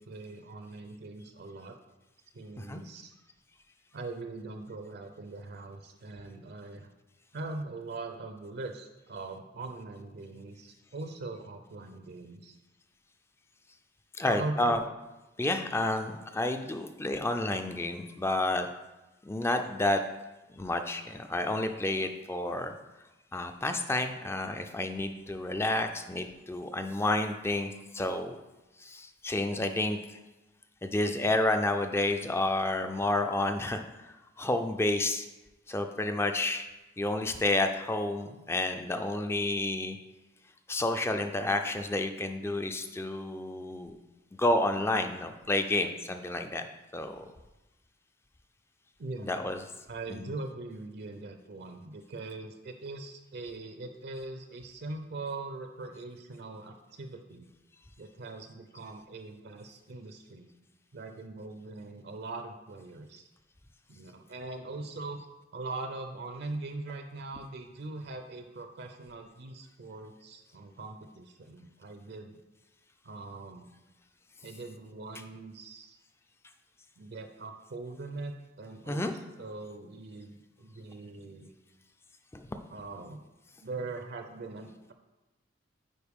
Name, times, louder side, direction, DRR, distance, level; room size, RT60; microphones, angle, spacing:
voice 1, 0.0-1.8 2.3-3.1 3.9-6.9 7.3-12.6 14.2-14.8 49.0-49.4 49.9-57.5 58.0-60.5 60.9-63.3 63.9-65.2 65.5-72.4 73.0-73.7 74.4-76.0 77.0-81.5 82.7-83.2 83.6-84.9, right 3 dB, 55° right, 6 dB, 0.5 m, -41 dB
voice 2, 14.2-14.8 15.4-18.7 19.2-20.0 20.5-22.7 23.3-28.4 28.8-30.2 30.8-35.3 35.7-36.7 37.0-40.0 40.7-43.9 44.3-46.7 46.9-47.2 49.2-49.6 50.2-50.3 78.9-79.1 82.3-82.5, left 2 dB, 15° left, 7 dB, 0.3 m, -30 dB
9.3 x 4.3 x 3.6 m, 1.1 s
head